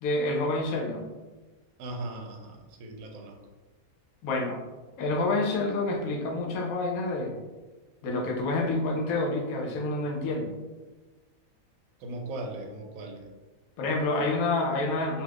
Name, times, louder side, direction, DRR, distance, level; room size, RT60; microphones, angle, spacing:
voice 1, 0.0-1.1 4.2-4.6 5.0-7.4 8.0-10.5 13.8-15.2, left 2 dB, 75° left, 1 dB, 1.0 m, -28 dB
voice 2, 1.8-3.4 12.0-13.3, right 2 dB, 75° right, 3 dB, 1.0 m, -38 dB
2.6 x 2.3 x 3.4 m, 1.2 s
omnidirectional pair, 1.5 m